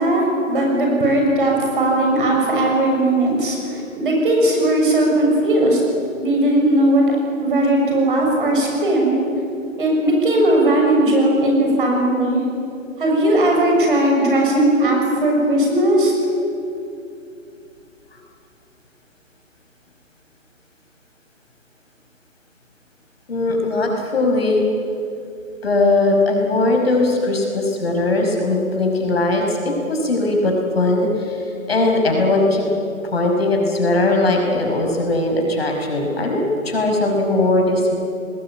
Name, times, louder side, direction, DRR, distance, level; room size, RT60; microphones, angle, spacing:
voice 1, 0.0-5.8 6.2-9.1 9.8-12.4 13.0-16.1, right 1 dB, 40° right, 0 dB, 6.8 m, -17 dB
voice 2, 23.3-24.6 25.6-32.6 33.1-38.0, left 2 dB, 45° left, 2 dB, 5.2 m, -19 dB
28.5 x 20.5 x 8.7 m, 2.7 s
hypercardioid pair, 170°, 40 cm